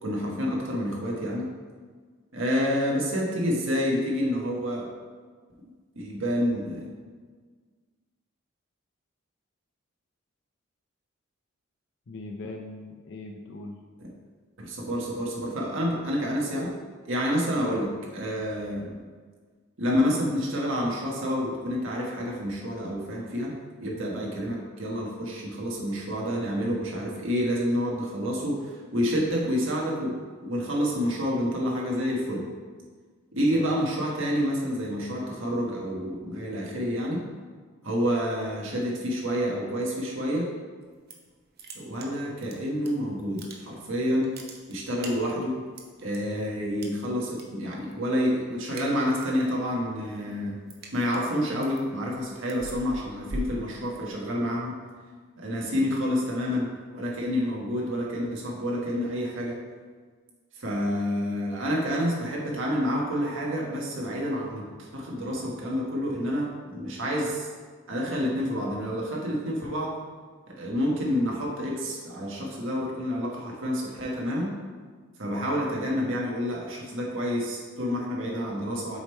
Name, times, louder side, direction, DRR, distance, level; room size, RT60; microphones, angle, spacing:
voice 1, 0.0-1.5 2.3-4.9 5.9-6.9 14.0-14.1 14.6-16.7 17.1-18.9 19.8-23.5 23.8-32.5 33.3-37.2 37.8-40.5 41.7-44.4 44.7-45.6 46.0-50.6 50.9-54.8 55.4-59.6 60.6-67.5 67.9-69.9 70.5-74.5 75.2-79.0, equal, 70° right, -2 dB, 1.4 m, -28 dB
voice 2, 12.1-13.8 33.5-33.7 78.2-78.6, left 2 dB, 60° left, 1 dB, 0.5 m, -40 dB
sound 1, 40.8-41.3 41.6-42.9 43.2-43.9 44.2-46.2 46.8-47.4 47.7-48.1 48.4-49.4 49.8-54.3, right 2 dB, 50° right, 0.8 m, -41 dB
6.9 x 3.5 x 4.4 m, 1.5 s
head